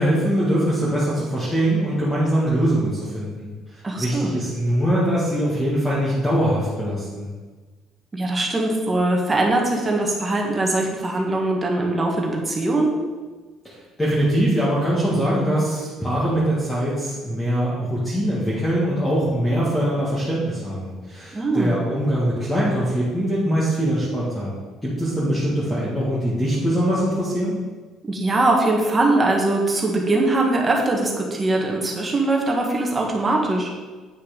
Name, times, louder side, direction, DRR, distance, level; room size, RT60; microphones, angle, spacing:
voice 1, 0.0-7.3 13.6-24.5 24.8-27.6, right 1 dB, 10° left, -8 dB, 1.7 m, -22 dB
voice 2, 3.8-4.3 8.1-12.9 21.3-21.8 28.1-33.7, right 2 dB, 15° right, -1 dB, 1.5 m, -21 dB
9.1 x 5.7 x 5.1 m, 1.3 s
cardioid pair, 165°, 0 cm